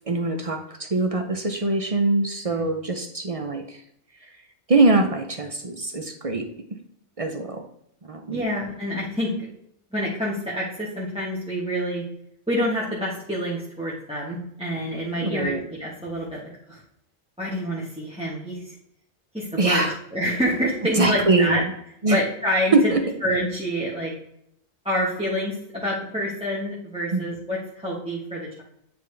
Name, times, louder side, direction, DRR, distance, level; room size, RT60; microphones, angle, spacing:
voice 1, 0.1-3.8 4.7-6.4 7.2-7.6 8.0-8.4 15.2-15.6 19.6-19.9 21.0-21.7 22.0-22.2 22.7-23.0 27.1-27.3, right 2 dB, 40° right, 5 dB, 0.5 m, -22 dB
voice 2, 8.3-9.3 9.9-12.0 12.5-16.8 17.4-18.7 19.3-21.6 22.1-22.9 23.2-24.1 24.8-28.6, equal, 5° right, -7 dB, 1.2 m, -27 dB
8.9 x 3.4 x 3.3 m, 0.73 s
omnidirectional pair, 1.1 m